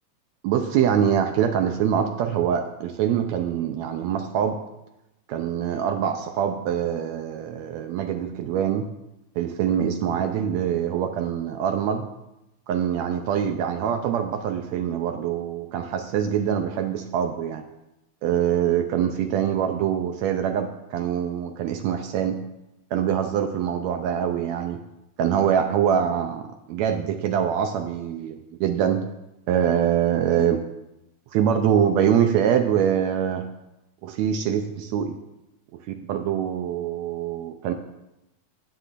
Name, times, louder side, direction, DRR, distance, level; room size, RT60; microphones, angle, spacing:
voice 1, 0.4-4.6 5.3-8.9 9.4-12.1 12.7-17.6 18.2-22.4 22.9-24.8 25.2-29.0 29.5-30.6 31.3-33.5 34.0-35.2 35.9-37.7, right 9 dB, 80° right, 6 dB, 1.8 m, -24 dB
16.0 x 7.7 x 2.5 m, 0.91 s
omnidirectional pair, 3.3 m